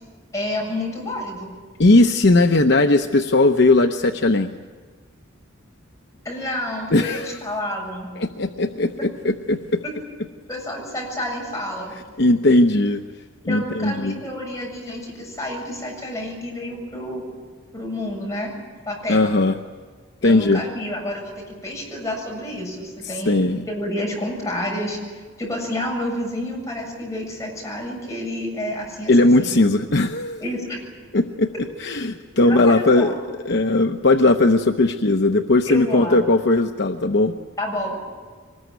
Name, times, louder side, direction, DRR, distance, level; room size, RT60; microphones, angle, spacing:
voice 1, 0.3-1.5 6.2-8.1 9.8-10.1 10.5-11.9 13.5-17.2 17.7-18.6 18.8-19.3 20.2-25.0 25.4-29.5 30.4-30.8 32.0-32.1 32.3-33.2 35.7-36.2 37.6-38.0, left 1 dB, 15° left, -1 dB, 7.6 m, -29 dB
voice 2, 1.8-4.5 6.9-7.4 8.2-9.8 12.2-13.0 13.5-14.2 19.1-19.6 20.2-20.6 23.3-23.6 29.1-30.4 31.1-31.5 31.8-33.1 33.4-37.3, left 2 dB, 60° left, 6 dB, 0.8 m, -18 dB
24.0 x 20.5 x 9.4 m, 1.5 s
head